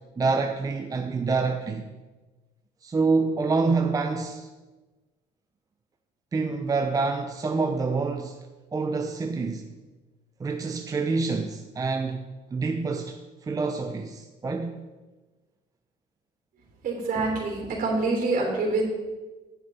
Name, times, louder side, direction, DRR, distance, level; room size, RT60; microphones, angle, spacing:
voice 1, 0.2-1.9 2.8-4.5 6.3-8.4 8.7-9.7 10.4-14.8, right 4 dB, 20° right, 0.5 m, -27 dB
voice 2, 16.8-18.8, right 3 dB, 55° right, 3.3 m, -26 dB
9.4 x 7.4 x 4.2 m
cardioid pair, 110°, 17 cm